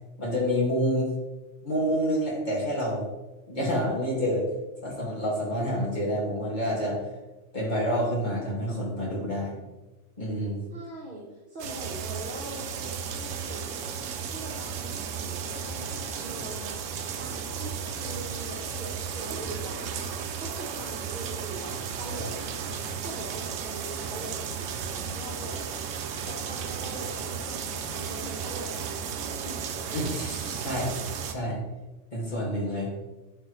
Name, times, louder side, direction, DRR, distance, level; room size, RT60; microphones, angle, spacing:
voice 1, 0.2-1.1 1.6-3.1 3.5-4.5 4.8-7.0 7.5-9.6 10.2-10.6 29.9-30.9 31.2-31.6 32.1-32.9, equal, 35° left, -5 dB, 2.5 m, -28 dB
voice 2, 10.7-13.7 14.2-16.8 17.2-20.0 20.4-22.4 23.0-25.9 26.3-29.9, right 1 dB, 40° right, -5 dB, 1.5 m, -42 dB
sound 1, 11.6-31.3, right 6 dB, 75° right, 1.0 m, -34 dB
10.5 x 4.6 x 3.3 m, 1.1 s
omnidirectional pair, 1.3 m